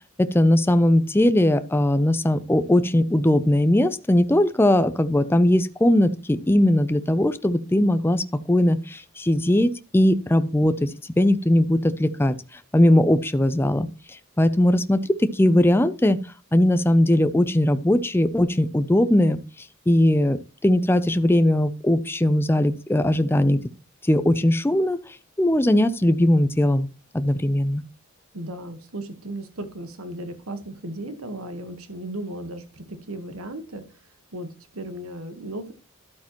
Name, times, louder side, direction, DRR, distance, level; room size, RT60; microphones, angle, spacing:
voice 1, 0.2-12.3 12.7-13.9 14.4-16.2 16.5-19.4 19.9-23.6 24.0-25.0 25.4-26.9 27.1-27.8, left 1 dB, 10° left, 12 dB, 0.4 m, -19 dB
voice 2, 28.3-33.8 34.3-35.7, right 1 dB, 75° right, 9 dB, 1.3 m, -35 dB
12.0 x 8.5 x 3.0 m, 0.35 s
head